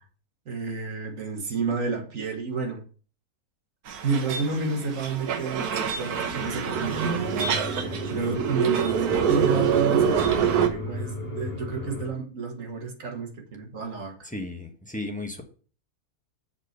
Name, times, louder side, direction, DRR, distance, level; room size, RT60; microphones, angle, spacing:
voice 1, 0.5-2.8 4.0-14.1, right 4 dB, 60° right, 3 dB, 1.8 m, -30 dB
sound 1, 3.9-10.7, right 8 dB, 80° right, 1.5 m, -26 dB
sound 2, 6.2-12.1, left 2 dB, 70° left, 2.2 m, -36 dB
voice 2, 14.2-15.4, left 2 dB, 5° left, 3 dB, 1.0 m, -34 dB
7.2 x 4.3 x 6.7 m, 0.40 s
omnidirectional pair, 1.6 m